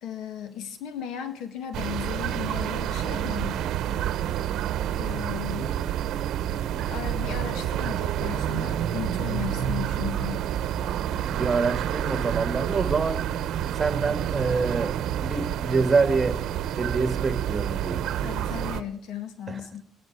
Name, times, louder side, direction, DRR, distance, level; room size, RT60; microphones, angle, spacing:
voice 1, 0.0-3.6 5.0-5.7 6.8-10.5 18.2-19.8, left 9 dB, 90° left, 9 dB, 1.8 m, -36 dB
sound 1, 1.7-18.8, right 10 dB, 85° right, 0.8 m, -28 dB
voice 2, 11.3-13.3 13.7-14.9 15.2-16.4 16.8-18.1 19.5-19.6, right 4 dB, 30° right, 9 dB, 1.7 m, -26 dB
25.0 x 10.5 x 4.6 m, 0.76 s
cardioid pair, 90°, 0 cm